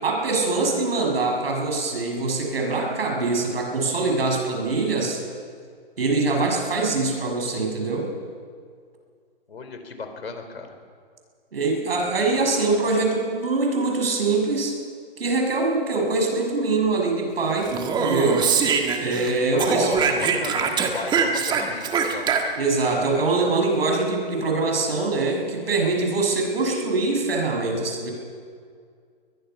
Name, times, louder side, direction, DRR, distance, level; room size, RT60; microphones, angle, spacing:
voice 1, 0.0-5.2 6.0-8.1 11.5-14.8 15.2-18.5 19.0-20.0 22.6-28.1, right 3 dB, 75° right, 2 dB, 6.5 m, -23 dB
voice 2, 9.5-10.7 19.5-22.3, left 4 dB, 80° left, 6 dB, 4.0 m, -35 dB
Speech, 17.7-19.3 19.6-22.8, right 5 dB, 15° right, 1.6 m, -23 dB
22.5 x 21.5 x 5.8 m, 2.1 s
hypercardioid pair, 140°, 30 cm